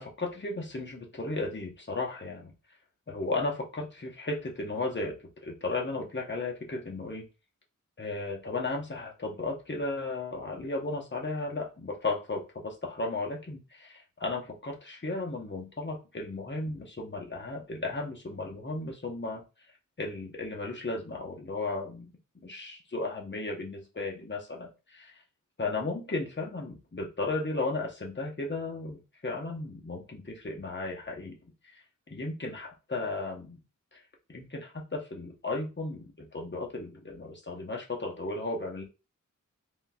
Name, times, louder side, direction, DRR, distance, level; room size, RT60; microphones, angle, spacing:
voice 1, 0.0-2.5 3.1-5.2 5.4-7.3 8.0-19.4 20.0-22.1 22.4-25.1 25.6-31.4 31.7-31.8 32.1-33.6 33.9-34.0 34.3-38.8, left 2 dB, 35° left, 0 dB, 0.8 m, -35 dB
3.5 x 2.6 x 2.3 m, 0.30 s
wide cardioid pair, 60°, 32 cm